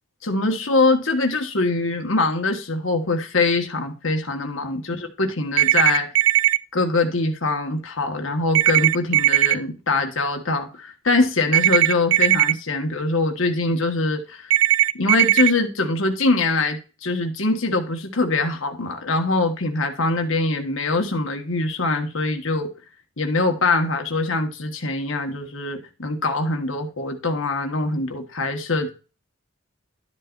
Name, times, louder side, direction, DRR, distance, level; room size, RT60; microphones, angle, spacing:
voice 1, 0.2-6.1 6.7-14.5 14.9-22.7 23.2-28.9, left 3 dB, 75° left, 1.6 m, -23 dB
sound 1, 5.6-6.6 8.5-9.5 11.5-12.5 14.5-15.5, right 14 dB, 75° right, 0.4 m, -17 dB
12.0 x 7.6 x 2.6 m
head